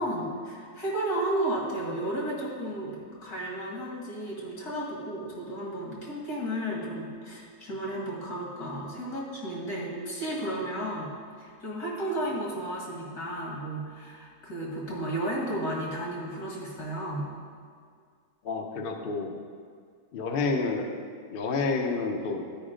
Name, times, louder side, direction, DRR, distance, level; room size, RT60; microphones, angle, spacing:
voice 1, 0.0-11.1 11.4-17.3, right 1 dB, 75° left, -3 dB, 2.3 m, -33 dB
voice 2, 18.4-19.3 20.1-20.9 21.3-22.4, left 4 dB, 50° left, 3 dB, 0.7 m, -29 dB
11.0 x 4.8 x 5.0 m, 2.1 s
omnidirectional pair, 1.7 m